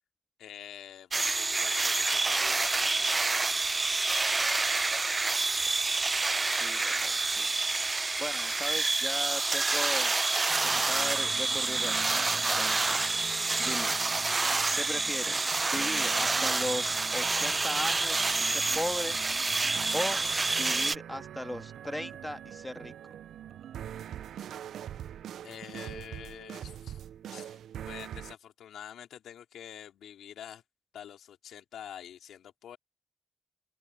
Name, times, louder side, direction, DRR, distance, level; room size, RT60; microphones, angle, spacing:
voice 1, 0.4-3.8 4.1-4.8 25.4-27.6 27.9-30.6 30.9-32.8, left 10 dB, 90° left, 3.4 m, -47 dB
sound 1, 1.1-21.0, right 3 dB, 35° right, 0.5 m, -28 dB
voice 2, 6.5-7.5 8.2-10.1 10.6-12.0 12.3-13.0 13.3-14.0 14.7-19.2 19.9-20.2 20.6-22.9, left 1 dB, 10° left, 2.1 m, -37 dB
sound 2, 10.5-28.4, right 10 dB, 85° right, 0.4 m, -44 dB
open air
cardioid pair, 55°, 0 cm